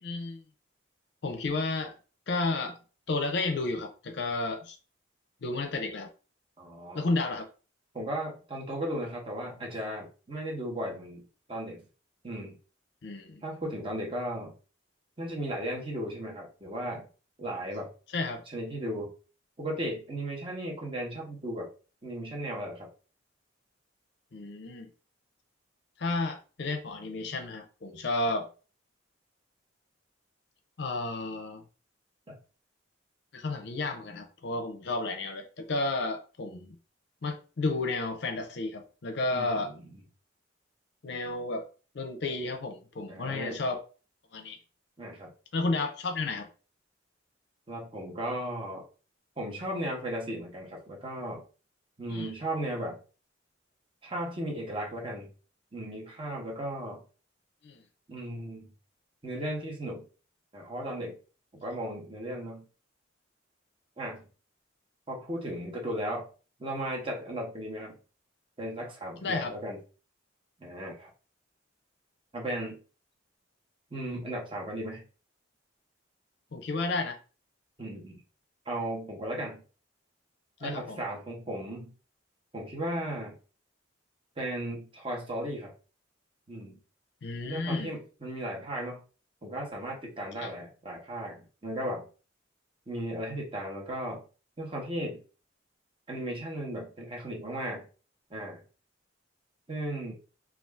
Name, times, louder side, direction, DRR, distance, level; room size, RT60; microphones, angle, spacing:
voice 1, 0.0-0.4 1.2-1.9 2.3-2.8 3.1-4.8 5.4-6.1 6.9-7.5 13.0-13.4 18.1-18.4 24.3-24.9 26.0-28.5 30.8-31.6 33.3-36.8 37.2-39.7 41.0-41.7 41.9-43.8 44.3-44.6 45.5-46.5 52.1-52.3 57.6-57.8 69.2-69.5 76.5-77.2 80.6-81.0 87.2-87.9 90.4-90.5, left 3 dB, 60° left, 0.5 m, -32 dB
voice 2, 6.6-7.0 7.9-11.2 11.5-11.8 12.2-12.6 13.4-14.5 15.2-17.1 17.4-17.9 18.5-19.1 19.6-21.7 22.0-22.9 32.3-32.4 39.3-39.8 43.1-43.6 45.0-45.3 47.7-48.8 49.4-51.4 52.0-53.0 54.0-55.3 55.7-57.0 58.1-58.7 59.2-60.0 60.5-61.2 61.5-62.6 64.0-64.2 65.1-66.3 66.6-68.0 68.6-69.8 70.6-71.1 72.3-72.8 73.9-75.0 77.8-78.2 78.7-79.6 80.6-81.9 82.5-83.4 84.4-85.7 86.5-86.8 87.5-89.0 89.4-92.1 92.9-94.2 94.6-95.2 96.1-97.9 98.3-98.6 99.7-100.1, right 1 dB, 25° right, 0.9 m, -36 dB
2.5 x 2.4 x 3.3 m
head